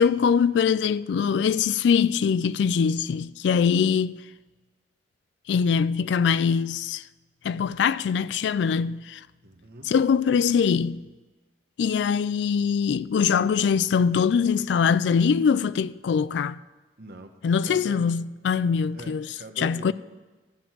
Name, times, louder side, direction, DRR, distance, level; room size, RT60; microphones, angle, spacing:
voice 1, 0.0-4.2 5.5-7.0 7.4-9.2 9.8-11.0 11.8-16.6 17.4-19.3 19.6-19.9, left 6 dB, 70° left, 0.3 m, -23 dB
voice 2, 9.4-9.9 17.0-17.4 17.6-18.1 18.9-19.9, right 1 dB, 60° right, 1.0 m, -42 dB
13.0 x 4.6 x 7.4 m
head